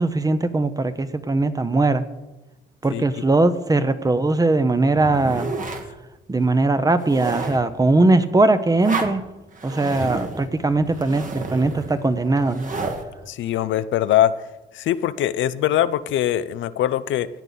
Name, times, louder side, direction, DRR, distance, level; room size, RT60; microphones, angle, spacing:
voice 1, 0.0-2.0 2.8-5.5 6.3-9.2 9.6-12.7, right 2 dB, 20° right, 11 dB, 0.8 m, -20 dB
voice 2, 2.9-3.2 13.3-14.3 14.7-17.3, left 12 dB, 75° left, 14 dB, 0.6 m, -22 dB
sound 1, 5.0-5.9 6.4-6.5 6.9-7.7 8.8-9.2 9.5-13.0, right 3 dB, 40° right, 1.6 m, -31 dB
16.5 x 9.0 x 4.1 m, 1.1 s
cardioid pair, 90°, 20 cm